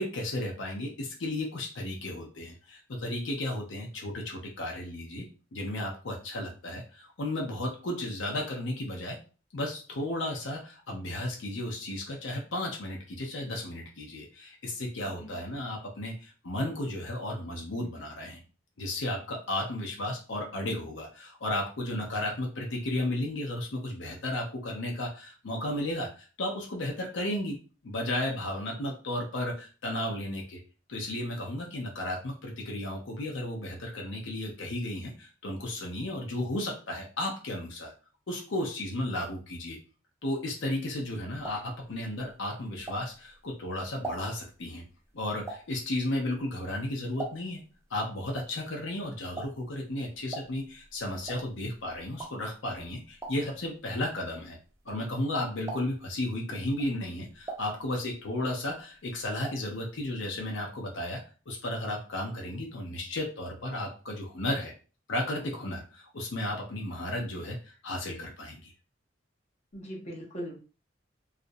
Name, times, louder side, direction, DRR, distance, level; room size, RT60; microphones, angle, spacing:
voice 1, 0.0-9.2 9.5-18.4 18.8-27.6 27.8-30.6 30.9-37.9 38.3-39.8 40.2-44.8 45.1-47.6 47.9-54.6 54.9-61.2 61.5-64.7 65.1-68.7, left 1 dB, 75° left, 0 dB, 0.6 m, -34 dB
voice 2, 15.0-15.4 69.7-70.6, equal, 35° left, -2 dB, 0.7 m, -40 dB
sound 1, 41.0-43.4 43.8-47.7 48.0-55.3 55.6-56.2 56.7-58.4 58.7-59.8 60.0-60.1 60.4-60.5, right 2 dB, 15° right, 0.4 m, -43 dB
2.4 x 2.0 x 2.6 m, 0.36 s
head